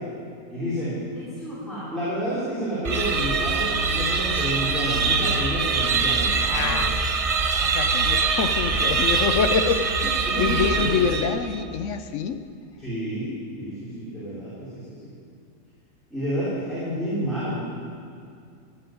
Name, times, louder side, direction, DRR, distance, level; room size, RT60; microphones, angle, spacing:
voice 1, 0.5-6.9 7.5-7.7 8.0-8.8 9.9-11.3 12.8-15.1 16.1-17.6, equal, ahead, -12 dB, 4.2 m, -30 dB
sound 1, 2.8-11.5, right 4 dB, 45° right, 0.4 m, -23 dB
voice 2, 6.5-7.1 7.6-9.9 10.4-12.4, left 6 dB, 60° left, 9 dB, 1.0 m, -25 dB
14.0 x 7.9 x 9.2 m, 2.4 s
omnidirectional pair, 1.5 m